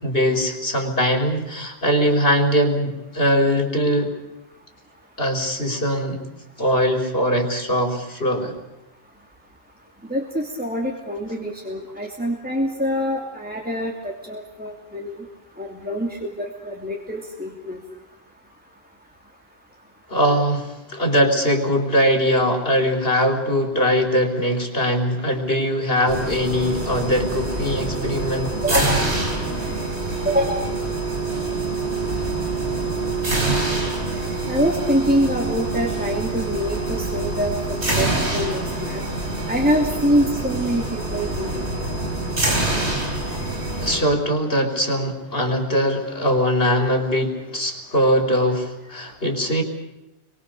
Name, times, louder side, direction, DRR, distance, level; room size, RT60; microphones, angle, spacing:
voice 1, 0.0-4.1 5.2-6.2 6.6-8.5 20.1-28.9 43.8-49.6, equal, 60° left, 3 dB, 4.7 m, -21 dB
voice 2, 10.1-15.2 15.6-17.8 28.6-29.0 30.2-30.7 34.5-39.0 39.5-41.9, equal, 10° right, 0 dB, 2.9 m, -25 dB
sound 1, 26.1-44.0, right 2 dB, 90° right, 5.0 m, -26 dB
30.0 x 24.0 x 6.8 m, 0.93 s
omnidirectional pair, 1.1 m